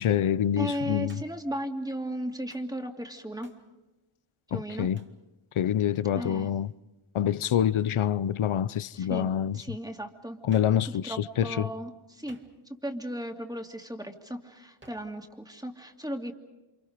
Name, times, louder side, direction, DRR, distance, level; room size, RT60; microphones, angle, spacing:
voice 1, 0.0-1.2 4.5-5.0 5.5-6.7 7.1-9.6 10.4-11.7, left 10 dB, 80° left, 0.8 m, -26 dB
voice 2, 0.6-3.5 4.5-4.9 6.1-6.5 9.0-10.4 11.0-12.4 12.7-16.3, equal, 10° right, 2.6 m, -36 dB
Hands, 1.1-1.5 2.5-2.7 3.4-3.7 5.0-5.2 7.4-7.7 10.5-10.9 12.3-12.8 14.8-15.2, right 1 dB, 25° right, 2.3 m, -56 dB
29.5 x 27.5 x 5.1 m
wide cardioid pair, 110°, 48 cm